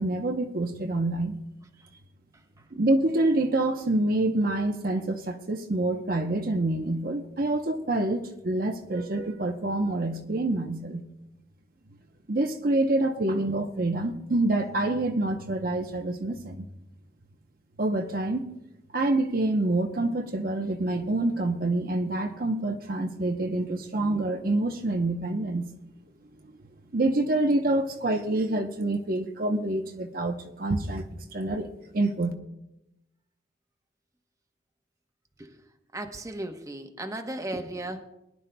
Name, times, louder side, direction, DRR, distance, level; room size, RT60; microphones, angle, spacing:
voice 1, 0.0-1.3 2.7-11.0 12.3-16.6 17.8-18.5 18.9-25.7 26.9-31.7 31.9-32.3, right 2 dB, 55° right, 4 dB, 0.8 m, -27 dB
voice 2, 35.9-38.0, right 1 dB, 20° right, 4 dB, 0.9 m, -36 dB
22.0 x 11.0 x 2.2 m, 0.88 s
head